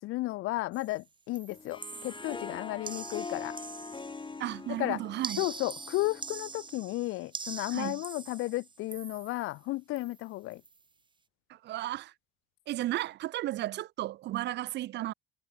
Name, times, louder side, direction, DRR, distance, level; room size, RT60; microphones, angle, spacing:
voice 1, 0.0-3.6 4.8-5.0 5.4-10.6, left 19 dB, 80° left, 0.8 m, -33 dB
sound 1, 0.7-1.0 1.3-4.4 5.2-9.6 10.0-10.2 10.5-10.8, right 4 dB, 25° right, 1.0 m, -44 dB
Harp, 1.5-6.7, left 4 dB, 25° left, 3.5 m, -43 dB
voice 2, 4.4-5.4 7.7-8.0 11.5-12.1 12.7-15.1, right 15 dB, 55° right, 0.4 m, -34 dB
cardioid pair, 100°, 21 cm